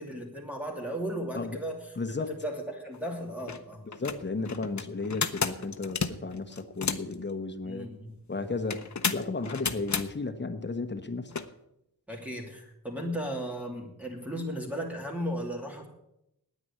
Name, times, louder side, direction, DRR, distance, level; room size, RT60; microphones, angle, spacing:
voice 1, 0.0-1.8 2.3-3.8 7.6-8.2 12.1-15.9, equal, 5° right, 0 dB, 2.8 m, -35 dB
voice 2, 2.0-2.3 3.9-7.9 8.3-11.4, left 3 dB, 30° left, 7 dB, 1.1 m, -34 dB
sound 1, 2.9-3.0 3.4-3.6 3.9-7.2 8.7-10.1 11.3-11.5, left 6 dB, 50° left, 0.8 m, -32 dB
9.6 x 9.5 x 8.5 m, 0.82 s
wide cardioid pair, 105°, 37 cm